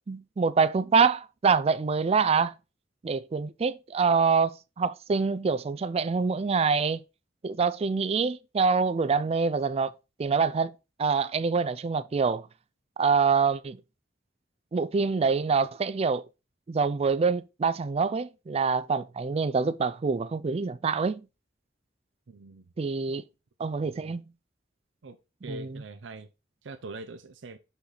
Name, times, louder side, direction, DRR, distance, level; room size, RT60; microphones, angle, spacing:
voice 1, 0.1-2.5 3.0-4.5 4.8-7.0 7.4-9.9 10.2-10.7 11.0-12.5 13.0-13.8 14.7-16.2 16.7-21.3 22.8-23.2 23.6-24.2 25.5-25.8, right 5 dB, 35° right, 0.4 m, -25 dB
voice 2, 22.3-22.7 23.1-23.2 23.8-24.2 25.0-25.2 25.4-26.3 26.6-27.6, right 2 dB, 80° right, 0.6 m, -43 dB
5.8 x 5.7 x 3.9 m
head